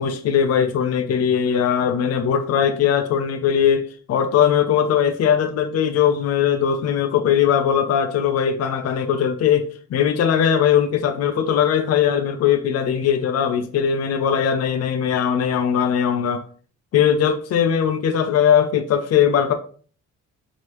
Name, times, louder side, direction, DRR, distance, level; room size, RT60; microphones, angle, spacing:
voice 1, 0.0-16.4 16.9-19.5, left 8 dB, 55° left, 0.6 m, -20 dB
4.7 x 2.9 x 2.9 m
cardioid pair, 90°, 30 cm